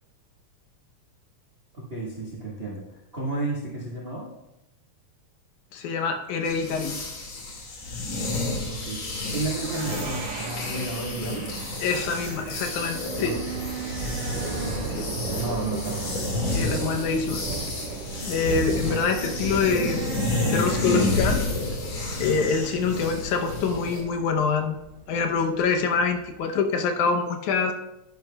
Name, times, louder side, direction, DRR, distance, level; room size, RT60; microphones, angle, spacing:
voice 1, 1.7-4.3 8.6-11.5 13.2-13.6 14.6-16.4, right 2 dB, 40° right, -3 dB, 0.8 m, -33 dB
voice 2, 5.7-7.0 11.8-13.4 14.9-15.1 16.5-17.4 18.2-20.0 20.5-21.4 22.2-24.8 25.1-27.7, left 5 dB, 80° left, 5 dB, 2.3 m, -25 dB
sound 1, 6.5-24.0, left 2 dB, 60° left, 3.1 m, -30 dB
sound 2, 9.3-21.1, right 8 dB, 80° right, 1.3 m, -38 dB
Thunder, 9.6-26.4, right 3 dB, 60° right, 2.9 m, -38 dB
10.5 x 10.5 x 2.3 m, 0.90 s
omnidirectional pair, 3.4 m